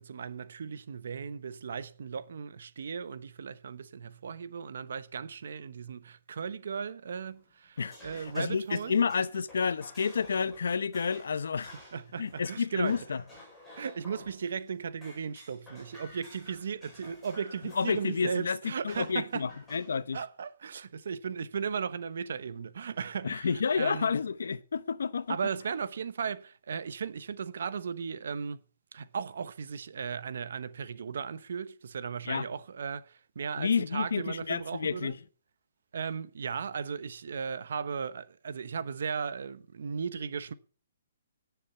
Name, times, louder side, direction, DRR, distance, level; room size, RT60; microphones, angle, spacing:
voice 1, 0.0-8.9 11.7-13.1 13.8-19.5 20.1-24.1 25.3-28.6 28.9-35.2 35.9-40.5, right 6 dB, 55° right, 1.0 m, -36 dB
sound 1, 7.2-14.7 15.0-18.4 18.9-20.0, left 1 dB, 5° left, 5.0 m, -53 dB
voice 2, 7.8-8.6 8.9-11.7 12.2-13.2 17.7-20.2 23.2-25.4 32.3-32.4 33.6-35.2, left 5 dB, 70° left, 0.8 m, -30 dB
17.5 x 7.2 x 5.7 m
hypercardioid pair, 180°, 0 cm